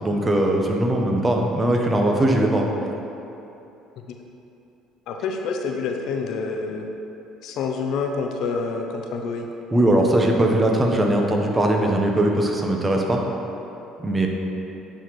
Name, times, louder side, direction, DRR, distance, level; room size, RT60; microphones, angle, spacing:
voice 1, 0.0-2.7 9.7-13.2 14.0-14.3, right 1 dB, 20° right, 1 dB, 0.9 m, -20 dB
voice 2, 5.1-6.9 7.4-9.5, left 4 dB, 70° left, 3 dB, 0.5 m, -27 dB
8.9 x 4.2 x 3.1 m, 2.9 s
supercardioid pair, 85°, 0 cm